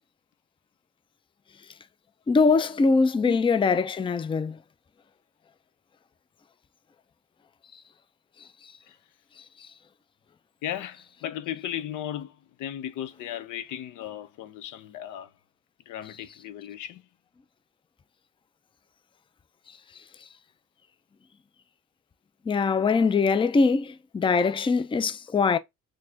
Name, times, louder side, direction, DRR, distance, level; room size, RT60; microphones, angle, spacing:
voice 1, 2.3-4.6 22.5-25.6, left 4 dB, 15° left, 0.4 m, -22 dB
voice 2, 10.6-15.3 15.9-17.1, left 11 dB, 85° left, 0.6 m, -36 dB
4.0 x 3.3 x 2.7 m
cardioid pair, 90°, 30 cm